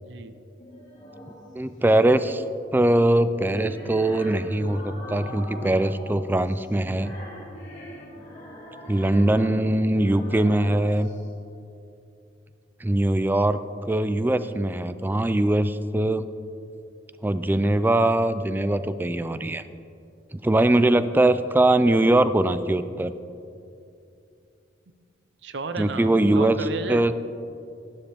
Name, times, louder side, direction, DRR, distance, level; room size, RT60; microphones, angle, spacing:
voice 1, 0.0-0.3 25.4-27.1, right 3 dB, 70° right, 10 dB, 0.7 m, -33 dB
sound 1, 0.6-1.5 3.1-11.2, equal, 40° left, 2.3 m, -41 dB
voice 2, 1.5-2.4 2.7-7.1 8.9-11.1 12.8-16.3 17.2-19.6 20.3-23.1 25.8-26.6 26.9-27.1, right 1 dB, 10° right, 13 dB, 0.3 m, -21 dB
13.0 x 11.5 x 3.5 m, 2.6 s
head